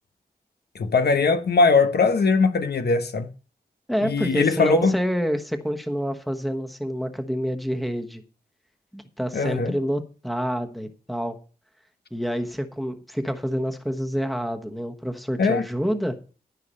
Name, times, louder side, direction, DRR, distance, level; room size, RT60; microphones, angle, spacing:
voice 1, 0.7-3.3 4.0-4.9 9.3-9.8 15.4-15.6, left 4 dB, 80° left, 1.0 m, -20 dB
voice 2, 3.9-8.2 8.9-11.4 12.1-16.1, equal, ahead, 1.1 m, -27 dB
13.0 x 5.8 x 5.4 m
wide cardioid pair, 130°, 17 cm